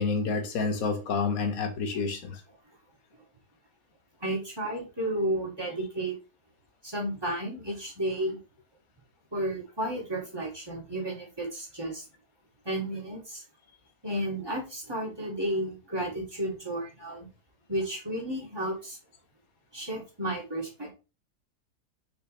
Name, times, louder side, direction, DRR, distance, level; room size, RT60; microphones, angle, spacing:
voice 1, 0.0-2.4, left 4 dB, 65° left, 1.5 m, -29 dB
voice 2, 4.2-6.2 6.8-8.4 9.3-12.0 12.6-13.4 14.0-17.3 17.7-19.0 19.7-20.9, right 1 dB, 15° right, 2.5 m, -32 dB
5.6 x 5.1 x 3.3 m
omnidirectional pair, 1.7 m